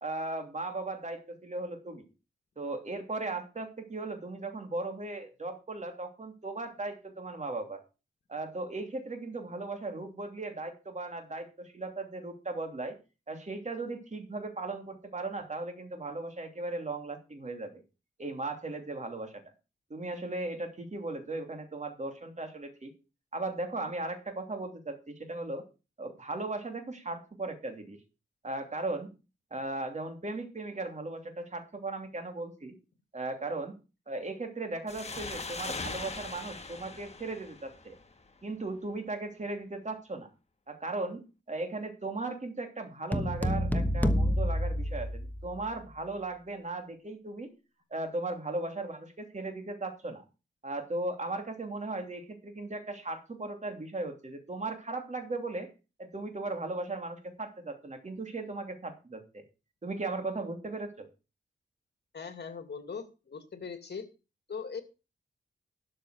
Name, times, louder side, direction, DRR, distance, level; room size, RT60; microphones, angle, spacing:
voice 1, 0.0-2.1 2.6-7.8 8.3-13.0 13.3-17.8 18.2-19.3 19.9-22.9 23.3-25.6 26.0-28.0 28.4-29.2 29.5-32.7 33.1-33.8 34.1-37.9 38.4-40.3 40.7-47.5 47.9-50.2 50.6-55.7 56.0-59.4 59.8-61.1, right 2 dB, 40° right, 5 dB, 3.0 m, -37 dB
sound 1, 34.9-38.3, left 3 dB, 35° left, 1.5 m, -40 dB
sound 2, 43.1-45.7, equal, 10° left, 1.1 m, -28 dB
voice 2, 62.1-64.1 64.5-64.8, left 5 dB, 60° left, 8 dB, 2.3 m, -40 dB
12.5 x 6.7 x 6.4 m, 0.31 s
wide cardioid pair, 100°, 19 cm